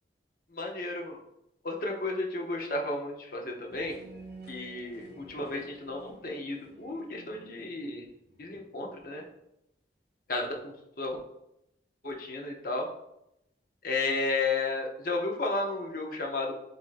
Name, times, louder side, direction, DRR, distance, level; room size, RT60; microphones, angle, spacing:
voice 1, 0.5-1.2 1.6-4.0 4.5-8.1 8.4-9.2 10.3-11.2 12.0-12.9 13.8-16.5, left 3 dB, 50° left, 1 dB, 0.7 m, -33 dB
sound 1, 3.7-8.6, right 2 dB, 65° right, 1.0 m, -50 dB
7.2 x 2.7 x 2.5 m, 0.82 s
head